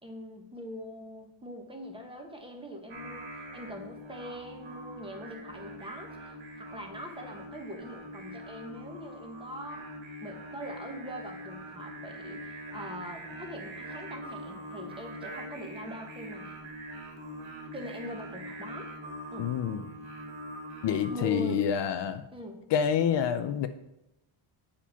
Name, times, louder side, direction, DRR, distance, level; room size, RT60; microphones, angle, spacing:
voice 1, 0.0-9.9 10.2-16.5 17.7-18.9 19.3-19.5 21.1-21.6 22.3-22.6, equal, 10° right, 2 dB, 1.3 m, -42 dB
Singing, 2.9-21.2, right 1 dB, 70° right, 2.3 m, -43 dB
voice 2, 19.4-19.8 20.8-22.2 22.7-23.7, left 8 dB, 60° left, 9 dB, 0.6 m, -27 dB
8.5 x 4.9 x 5.7 m, 0.89 s
cardioid pair, 145°, 49 cm